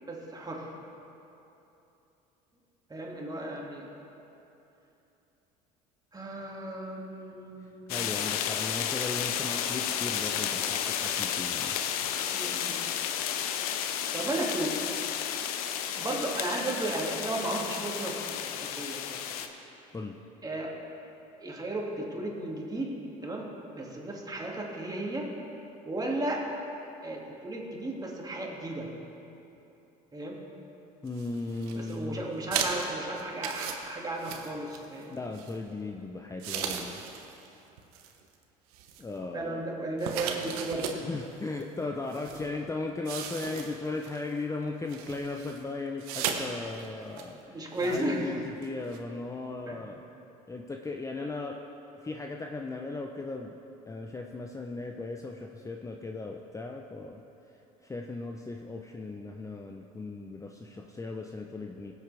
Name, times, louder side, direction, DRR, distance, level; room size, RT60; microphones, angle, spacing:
voice 1, 0.0-0.7 2.9-3.9 6.1-8.0 12.3-12.8 14.1-14.8 16.0-19.2 20.4-20.7 21.4-23.0 23.2-25.3 25.8-26.4 26.8-28.9 30.1-30.4 31.7-35.2 39.2-41.0 42.3-42.4 47.2-48.3 49.7-49.8, right 2 dB, 20° right, -2 dB, 2.5 m, -35 dB
sound 1, 7.9-19.5, left 9 dB, 85° left, 0.7 m, -32 dB
voice 2, 7.9-11.8 19.9-20.2 31.0-32.2 35.1-37.0 39.0-39.6 40.9-50.0 50.5-51.6 52.0-53.5 53.9-57.2 57.8-61.9, left 3 dB, 15° left, 2 dB, 0.7 m, -37 dB
sound 2, 31.1-32.0 32.5-35.0 35.3-35.6 36.4-37.5 37.8-38.1 38.7-39.2 40.0-41.0 41.6-41.7 42.1-42.5 43.0-44.2 44.9-45.6 46.0-46.4 46.7-46.9 47.2-47.3 47.8-48.1 48.6-48.7 48.9-49.0, right 7 dB, 80° right, 1.0 m, -36 dB
17.5 x 8.2 x 3.5 m, 3.0 s
hypercardioid pair, 70°, 18 cm